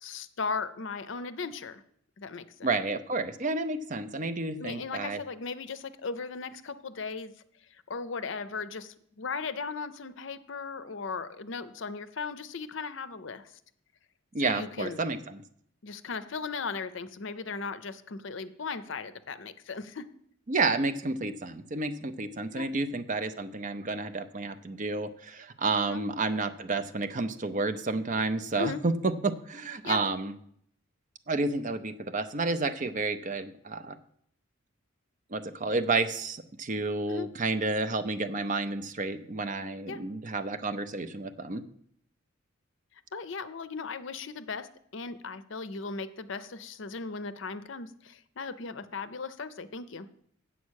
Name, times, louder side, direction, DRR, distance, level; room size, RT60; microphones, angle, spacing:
voice 1, 0.0-1.8 2.2-2.7 4.6-7.3 7.9-13.5 14.4-15.1 15.8-20.1 22.5-22.7 25.9-26.0 28.6-28.8 29.8-30.0 37.1-37.3 39.9-40.0 43.1-50.1, left 4 dB, 65° left, 13 dB, 0.6 m, -37 dB
voice 2, 2.6-5.2 14.3-15.4 20.5-30.3 31.3-34.0 35.3-41.6, right 3 dB, 40° right, 11 dB, 0.6 m, -30 dB
8.4 x 7.1 x 6.4 m, 0.67 s
head